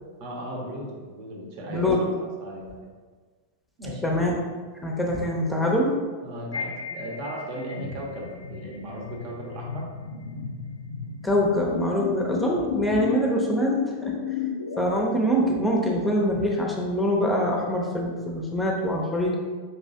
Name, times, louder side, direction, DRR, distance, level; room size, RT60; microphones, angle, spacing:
voice 1, 0.2-2.8 3.8-4.1 6.2-9.9, right 1 dB, 45° right, -1 dB, 1.0 m, -36 dB
voice 2, 4.0-4.3 4.8-5.9 11.2-13.8 14.0-14.1 14.8-19.4, equal, 5° left, -1 dB, 0.7 m, -24 dB
sound 1, 6.5-14.9, left 7 dB, 70° left, 0.3 m, -33 dB
5.5 x 3.1 x 2.8 m, 1.5 s
figure-of-eight pair, 90°, 0 cm